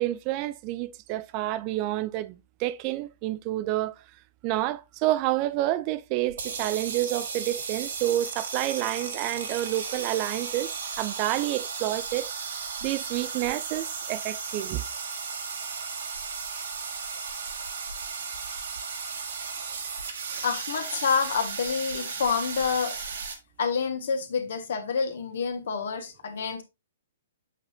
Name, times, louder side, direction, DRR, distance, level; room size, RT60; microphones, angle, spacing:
voice 1, 0.0-3.9 4.4-12.3 12.8-14.8, right 15 dB, 35° right, 0.4 m, -29 dB
sound 1, 6.3-23.4, right 5 dB, 65° right, 1.9 m, -35 dB
voice 2, 20.4-22.9 23.6-26.6, left 6 dB, 65° left, 1.7 m, -28 dB
8.1 x 5.8 x 2.7 m
hypercardioid pair, 125°, 0 cm